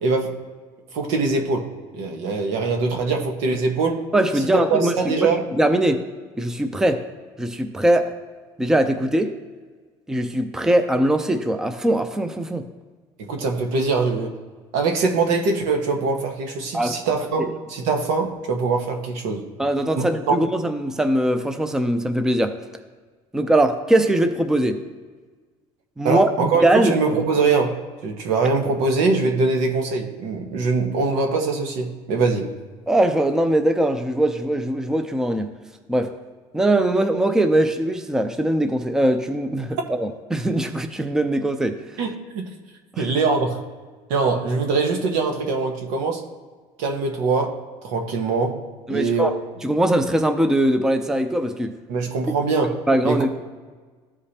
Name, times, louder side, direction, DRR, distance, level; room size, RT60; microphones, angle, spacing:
voice 1, 0.0-0.4 0.9-4.0 4.7-5.4 13.2-14.3 14.7-19.4 20.0-20.3 26.0-32.5 42.0-42.4 43.0-43.6 44.1-46.2 46.8-47.6 47.8-48.6 48.9-49.3 51.9-52.8 53.0-53.3, right 4 dB, 85° right, 3 dB, 1.3 m, -22 dB
voice 2, 4.1-6.0 6.4-7.0 7.4-8.1 8.6-9.3 10.1-12.6 16.7-17.0 17.4-17.5 19.6-22.6 23.3-24.8 26.0-26.9 32.9-35.5 35.9-36.1 36.5-41.8 42.9-43.1 48.9-49.4 49.6-51.8 52.9-53.4, right 1 dB, 5° right, 8 dB, 0.5 m, -21 dB
14.5 x 5.0 x 2.8 m, 1.5 s
cardioid pair, 140°, 12 cm